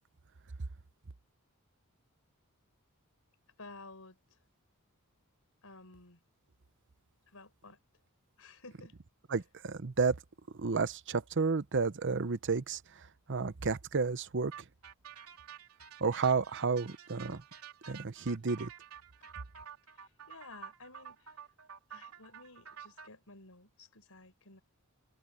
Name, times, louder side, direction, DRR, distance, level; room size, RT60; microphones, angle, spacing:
voice 1, 3.6-4.4 5.6-6.2 7.3-7.8 8.4-9.0 9.3-9.4 19.2-19.3 19.9-21.4 21.9-24.6, left 3 dB, 70° left, 5.0 m, -54 dB
voice 2, 9.3-10.2 10.6-12.8 13.3-14.5 16.0-17.4 17.9-18.7, right 4 dB, 55° right, 0.8 m, -31 dB
sound 1, 14.5-23.1, right 8 dB, 85° right, 3.0 m, -50 dB
head